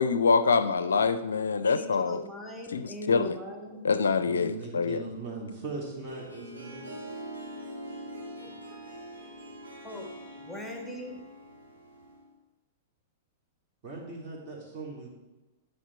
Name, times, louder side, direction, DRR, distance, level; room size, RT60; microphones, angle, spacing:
voice 1, 0.0-2.2 2.7-3.4 3.8-5.0, left 5 dB, 70° left, 12 dB, 0.4 m, -25 dB
voice 2, 1.7-3.9 9.8-11.2, left 1 dB, ahead, 1 dB, 1.4 m, -40 dB
voice 3, 4.2-6.9 13.8-15.1, right 3 dB, 35° right, -1 dB, 2.5 m, -39 dB
Harp, 5.7-12.3, equal, 80° right, 2.8 m, -43 dB
10.0 x 5.5 x 4.4 m, 1.1 s
figure-of-eight pair, 100°, 0 cm